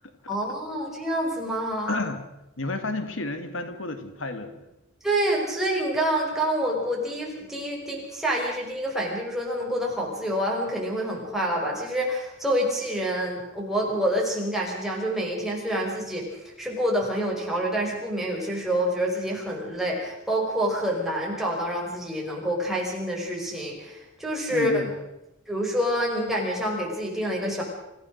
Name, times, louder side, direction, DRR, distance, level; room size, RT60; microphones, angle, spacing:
voice 1, 0.3-2.0 5.0-24.8 25.5-27.6, equal, ahead, -2 dB, 5.3 m, -27 dB
voice 2, 1.9-2.2 2.6-4.6 24.5-24.9, left 2 dB, 85° left, 9 dB, 1.9 m, -31 dB
26.5 x 15.0 x 6.5 m, 0.91 s
head